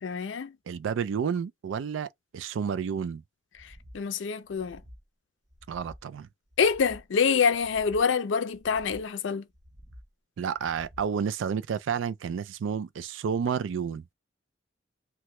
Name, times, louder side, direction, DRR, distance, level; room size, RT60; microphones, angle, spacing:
voice 1, 0.0-0.6 3.6-4.8 6.6-9.5, left 6 dB, 80° left, 0.4 m, -26 dB
voice 2, 0.7-2.1 2.3-3.2 5.7-6.3 10.4-14.1, right 7 dB, 90° right, 0.3 m, -30 dB
sound 1, 3.5-4.0 4.4-5.0 5.5-6.1 6.5-7.1 7.5-8.1 8.5-9.1 9.5-10.1 10.5-11.1, equal, 20° right, 0.5 m, -51 dB
2.9 x 2.2 x 3.1 m
head